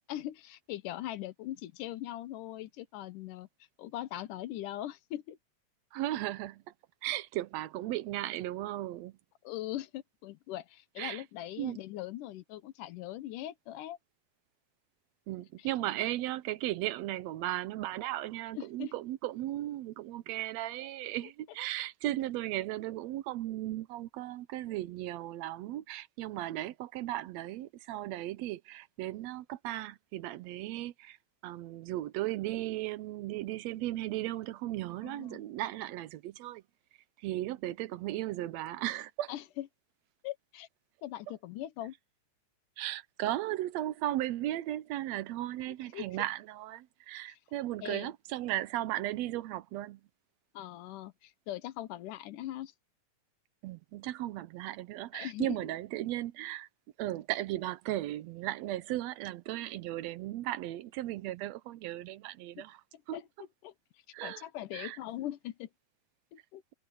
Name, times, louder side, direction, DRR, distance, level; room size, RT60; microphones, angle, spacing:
voice 1, 0.1-3.5 3.8-5.4 9.4-14.0 15.6-15.7 18.6-18.9 35.0-35.4 39.3-39.7 40.2-40.7 41.0-41.9 45.7-46.1 47.3-47.4 47.8-48.1 50.5-52.7 55.1-55.7 62.6-62.7 63.1-63.3 63.6-63.7 64.2-65.7 66.3-66.6, left 13 dB, 90° left, 2.5 m, -41 dB
voice 2, 5.9-6.6 7.0-9.2 11.0-11.2 11.6-11.8 15.3-31.2 31.4-36.6 37.2-39.3 42.8-50.0 53.6-56.7 57.0-62.8 63.1-63.2 64.1-64.5 64.7-65.0, right 15 dB, 75° right, 1.7 m, -36 dB
omnidirectional pair, 3.6 m